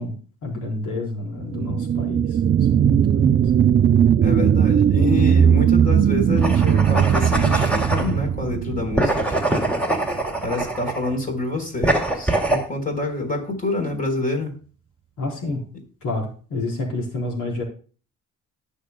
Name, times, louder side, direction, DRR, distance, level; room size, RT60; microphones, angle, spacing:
voice 1, 0.0-2.4 2.7-3.4 15.2-15.6 16.0-17.6, left 2 dB, 80° left, 0 dB, 4.4 m, -29 dB
sound 1, 1.4-10.5 10.9-11.0, right 8 dB, 35° right, 0.4 m, -19 dB
voice 2, 4.2-9.7 10.4-14.5, left 2 dB, 30° left, 3 dB, 4.1 m, -27 dB
sound 2, 6.4-8.1 9.0-11.1 11.8-12.7, right 2 dB, 5° left, 2.5 m, -23 dB
18.5 x 6.6 x 2.2 m, 0.39 s
cardioid pair, 90°, 30 cm